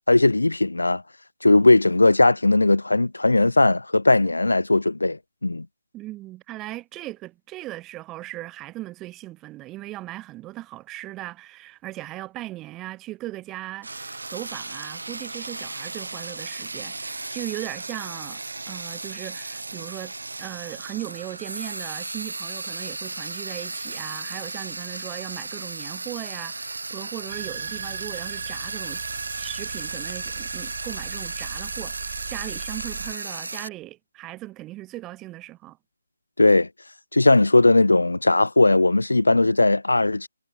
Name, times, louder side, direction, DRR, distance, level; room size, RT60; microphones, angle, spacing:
voice 1, 0.1-1.0 1.4-5.7 36.4-36.7 37.1-40.3, left 2 dB, 85° left, 0.4 m, -18 dB
voice 2, 5.9-18.4 18.7-20.1 20.4-29.1 29.4-35.8, right 17 dB, 15° right, 1.8 m, -38 dB
Frying (food), 13.8-33.7, right 3 dB, 80° right, 2.3 m, -35 dB
sound 1, 27.3-33.1, right 9 dB, 35° right, 0.6 m, -38 dB
figure-of-eight pair, 155°, 0 cm